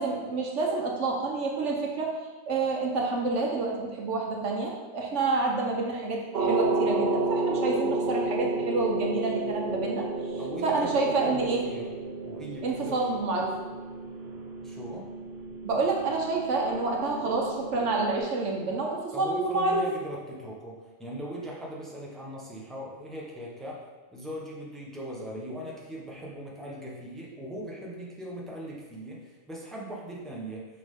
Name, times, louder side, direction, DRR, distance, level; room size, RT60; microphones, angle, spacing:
voice 1, 0.0-2.1 2.5-11.6 12.6-13.6 15.6-19.9, right 3 dB, 75° right, 0 dB, 1.3 m, -28 dB
sound 1, 6.3-18.2, right 2 dB, 60° right, 1.0 m, -32 dB
voice 2, 10.4-10.9 11.2-11.9 12.2-13.0 14.6-15.1 19.1-23.8 24.1-30.7, equal, ahead, -4 dB, 1.0 m, -39 dB
6.1 x 5.3 x 3.7 m, 1.3 s
omnidirectional pair, 1.3 m